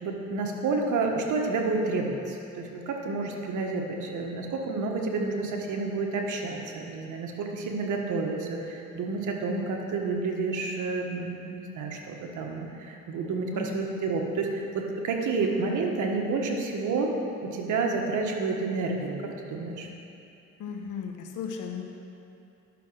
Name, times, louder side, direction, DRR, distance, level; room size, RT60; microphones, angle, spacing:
voice 1, 0.0-17.1 17.4-19.2 19.5-19.9, right 3 dB, 75° right, 1 dB, 1.4 m, -30 dB
voice 2, 13.5-14.0 20.6-21.8, left 6 dB, 90° left, 3 dB, 1.1 m, -36 dB
10.5 x 6.2 x 6.3 m, 2.7 s
cardioid pair, 90°, 30 cm